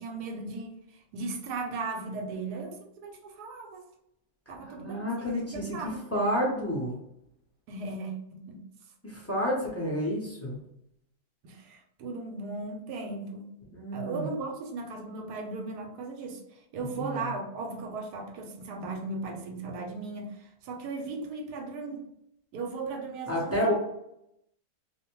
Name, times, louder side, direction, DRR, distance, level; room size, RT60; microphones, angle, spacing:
voice 1, 0.0-3.9 4.5-6.0 7.7-8.6 11.4-13.5 13.9-22.1 22.5-23.7, right 3 dB, 85° right, 3 dB, 1.2 m, -37 dB
voice 2, 4.6-5.8 6.1-6.9 9.0-10.6 13.7-14.3 16.8-17.3 23.3-23.7, equal, 15° left, -6 dB, 0.5 m, -30 dB
2.6 x 2.1 x 2.9 m, 0.79 s
omnidirectional pair, 1.7 m